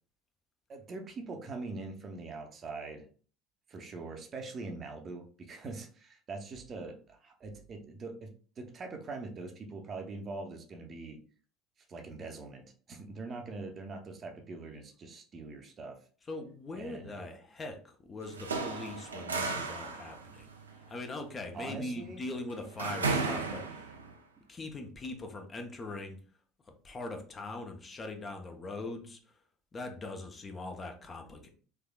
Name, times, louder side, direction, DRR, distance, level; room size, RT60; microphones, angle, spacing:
voice 1, 0.7-3.1 3.7-8.3 8.6-11.2 11.9-16.0 16.7-17.3 21.5-22.2, right 3 dB, 35° right, 4 dB, 0.7 m, -43 dB
voice 2, 16.3-20.5 20.9-23.9 24.5-26.2 26.7-29.2 29.7-31.5, left 2 dB, 30° left, 4 dB, 0.7 m, -41 dB
sound 1, 18.2-24.1, right 4 dB, 80° right, 0.4 m, -35 dB
3.4 x 3.2 x 2.3 m, 0.41 s
figure-of-eight pair, 65°, 0 cm